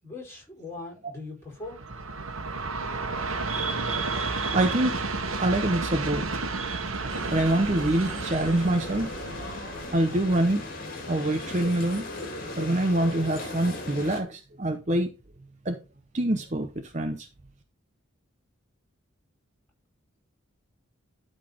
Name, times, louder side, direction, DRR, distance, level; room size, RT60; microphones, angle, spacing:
voice 1, 0.0-1.8, left 3 dB, 10° left, 5.0 m, -40 dB
Train, 1.6-10.8, right 3 dB, 85° right, 1.5 m, -32 dB
voice 2, 3.5-5.1 5.4-6.3 6.5-9.1 9.9-10.6 11.1-12.0 12.6-15.1 15.6-15.8 16.1-17.3, right 1 dB, 35° right, 0.9 m, -26 dB
sound 1, 7.1-14.2, left 2 dB, 45° left, 2.2 m, -38 dB
12.0 x 4.1 x 5.1 m
head